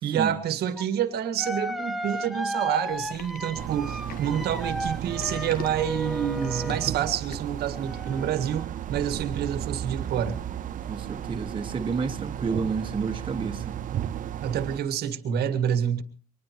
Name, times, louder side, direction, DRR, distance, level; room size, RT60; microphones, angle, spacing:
voice 1, 0.0-10.4 14.4-16.0, right 9 dB, 70° right, 1.8 m, -28 dB
sound 1, 0.8-0.9 1.4-7.0 7.7-8.6, equal, ahead, 0.9 m, -34 dB
sound 2, 2.9-7.6, left 7 dB, 60° left, 1.3 m, -43 dB
sound 3, 3.6-14.8, right 10 dB, 50° right, 0.7 m, -34 dB
voice 2, 10.9-13.8, right 5 dB, 30° right, 1.7 m, -30 dB
24.0 x 20.0 x 3.1 m
cardioid pair, 110°, 17 cm